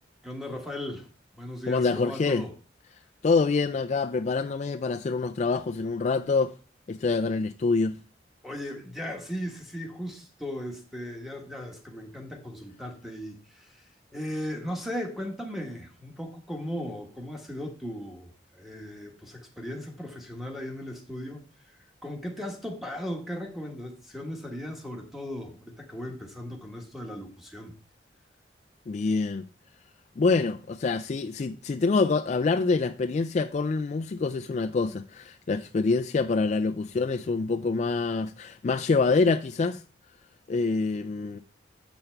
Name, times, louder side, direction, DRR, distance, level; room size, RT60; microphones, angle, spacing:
voice 1, 0.2-1.1 1.4-2.5 8.4-27.7, equal, ahead, 1.4 m, -37 dB
voice 2, 1.7-2.5 3.2-6.5 6.9-8.0 28.9-29.4 30.2-39.8 40.5-41.4, left 4 dB, 40° left, 0.3 m, -26 dB
8.0 x 5.7 x 4.5 m
head